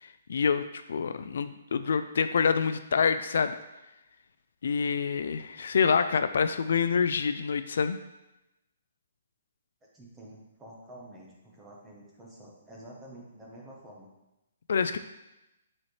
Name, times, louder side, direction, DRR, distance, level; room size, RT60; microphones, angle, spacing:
voice 1, 0.0-3.6 4.6-8.0 14.7-15.0, left 6 dB, 65° left, 10 dB, 0.3 m, -27 dB
voice 2, 9.9-14.1, right 1 dB, 10° right, -3 dB, 1.0 m, -49 dB
8.6 x 4.3 x 3.2 m, 0.95 s
hypercardioid pair, 175°, 0 cm